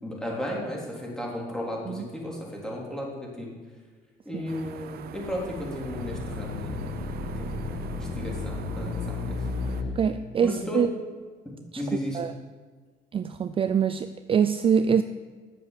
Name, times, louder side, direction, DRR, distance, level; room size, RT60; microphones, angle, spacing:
voice 1, 0.0-3.5 4.2-6.9 7.3-7.5 8.0-9.3 10.4-10.8 11.8-12.2, left 1 dB, 5° left, -3 dB, 3.4 m, -34 dB
sound 1, 4.5-9.8, right 9 dB, 65° right, 0.7 m, -44 dB
sound 2, 5.0-9.9, left 3 dB, 65° left, 2.0 m, -33 dB
voice 2, 10.0-10.9 11.7-11.8 12.1-12.3 13.1-15.0, right 7 dB, 35° right, 11 dB, 0.4 m, -24 dB
10.0 x 7.4 x 7.4 m, 1.5 s
cardioid pair, 110°, 17 cm